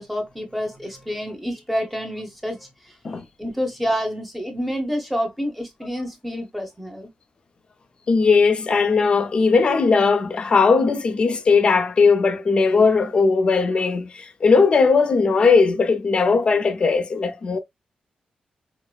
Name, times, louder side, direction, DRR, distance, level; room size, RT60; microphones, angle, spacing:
voice 1, 0.0-2.9 3.4-7.1, equal, ahead, 1.0 m, -28 dB
voice 2, 8.1-17.6, left 4 dB, 45° left, 0.6 m, -18 dB
4.7 x 2.1 x 2.3 m
wide cardioid pair, 130°, 3 cm